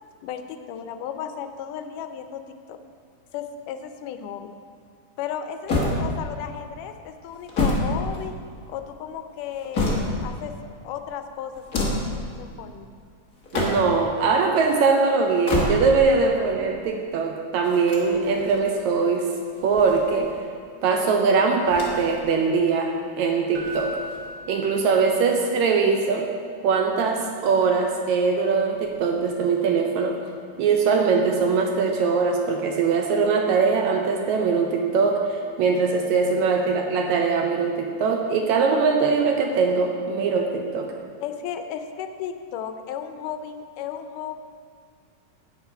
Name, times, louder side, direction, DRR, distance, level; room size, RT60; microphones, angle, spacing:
voice 1, 0.2-2.4 2.7-2.8 3.3-4.5 5.2-8.3 8.7-10.5 10.8-12.9 41.2-44.4, left 8 dB, 85° left, 8 dB, 2.1 m, -34 dB
sound 1, 5.7-6.5 7.3-8.7 9.3-10.4 11.5-12.2 13.3-14.1 15.2-16.1 17.6-18.6 19.5-20.4 21.6-22.2 22.5-22.6 23.6-24.4, left 2 dB, 45° left, 1.1 m, -27 dB
voice 2, 13.5-19.3 19.6-20.3 20.8-24.0 24.5-26.3 26.6-30.2 30.6-40.9, right 4 dB, 75° right, 2 dB, 1.8 m, -22 dB
Keyboard (musical), 23.5-25.5 28.7-28.9, right 1 dB, 55° right, 1.1 m, -38 dB
8.4 x 8.0 x 5.5 m, 2.2 s
omnidirectional pair, 3.7 m